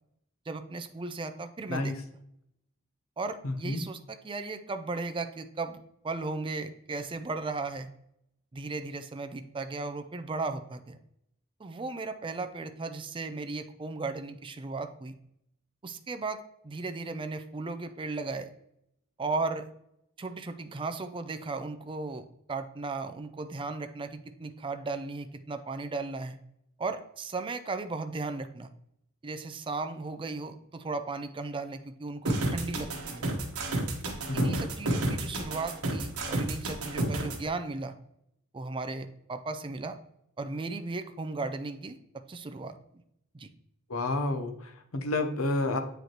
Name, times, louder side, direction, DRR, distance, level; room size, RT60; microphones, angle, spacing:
voice 1, 0.5-1.9 3.2-7.9 8.5-11.0 11.6-15.1 15.8-18.5 19.2-19.7 20.2-26.4 26.8-28.7 29.2-33.3 34.3-37.9 38.5-40.0 40.4-42.0 42.3-42.8 43.3-43.5, right 3 dB, 25° right, 8 dB, 0.4 m, -36 dB
voice 2, 3.4-3.8 34.3-34.6 43.9-45.8, left 2 dB, 70° left, 6 dB, 0.8 m, -30 dB
sound 1, 32.3-37.4, right 1 dB, 85° right, 1.3 m, -30 dB
8.0 x 5.0 x 3.0 m, 0.77 s
head